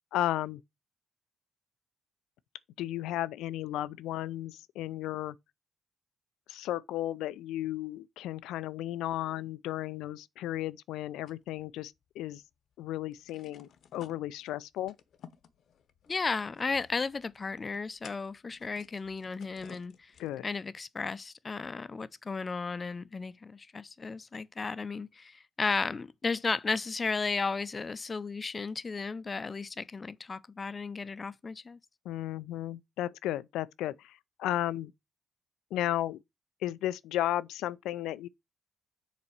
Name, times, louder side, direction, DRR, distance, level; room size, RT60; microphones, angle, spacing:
voice 1, 0.1-0.6 2.8-5.4 6.5-12.4 12.8-14.9 20.2-20.4 32.1-34.9 35.7-36.2 36.6-38.3, left 13 dB, 85° left, 0.4 m, -34 dB
sound 1, 11.3-12.4 12.7-12.8 13.1-20.6, left 8 dB, 70° left, 0.9 m, -56 dB
voice 2, 16.1-20.1 20.4-31.8, left 4 dB, 35° left, 0.6 m, -34 dB
7.1 x 4.1 x 6.4 m
supercardioid pair, 65°, 0 cm